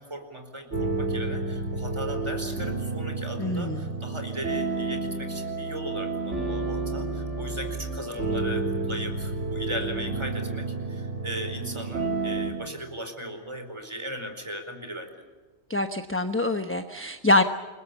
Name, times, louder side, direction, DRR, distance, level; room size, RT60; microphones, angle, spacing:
voice 1, 0.0-15.2, equal, 25° right, 6 dB, 4.7 m, -37 dB
sound 1, 0.7-12.5, right 3 dB, 85° right, 4.2 m, -30 dB
voice 2, 3.4-4.0 15.7-17.4, left 2 dB, 10° left, 7 dB, 1.1 m, -25 dB
29.0 x 22.0 x 7.2 m, 1.3 s
omnidirectional pair, 1.2 m